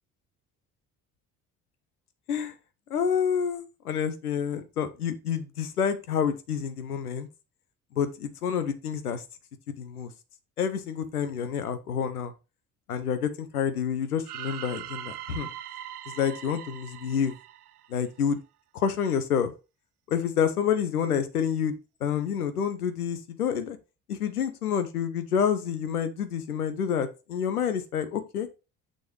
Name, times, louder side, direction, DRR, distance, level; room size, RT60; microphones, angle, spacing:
voice 1, 2.9-7.3 7.9-9.2 9.8-10.1 10.6-12.3 12.9-15.5 16.2-17.3 17.9-18.4 18.7-19.5 20.1-23.8 24.1-28.5, left 7 dB, 85° left, 11 dB, 0.8 m, -28 dB
sound 1, 14.2-18.3, right 12 dB, 85° right, 0.5 m, -41 dB
6.7 x 6.2 x 3.0 m, 0.28 s
figure-of-eight pair, 50°, 44 cm